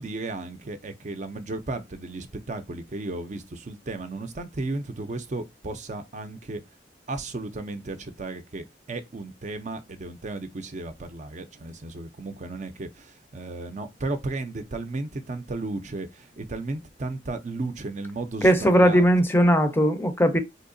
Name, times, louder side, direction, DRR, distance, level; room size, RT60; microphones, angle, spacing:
voice 1, 0.0-6.6 7.1-19.1, right 2 dB, 45° right, 0.5 m, -34 dB
voice 2, 18.4-20.4, equal, 15° left, 0.6 m, -19 dB
4.2 x 2.8 x 2.6 m
head